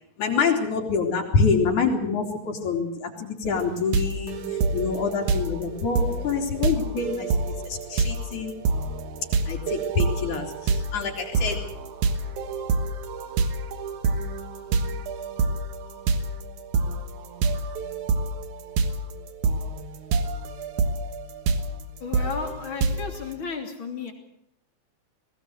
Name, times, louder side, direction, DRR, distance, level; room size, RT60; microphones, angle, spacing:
voice 1, 0.2-4.4 4.7-7.3 7.7-8.5 9.5-11.6, left 5 dB, 85° left, 1 dB, 4.5 m, -26 dB
sound 1, 3.5-23.3, right 3 dB, 85° right, 2.8 m, -27 dB
voice 2, 22.0-24.1, left 4 dB, 45° left, 3 dB, 3.6 m, -33 dB
21.0 x 17.5 x 7.9 m, 0.74 s
omnidirectional pair, 3.3 m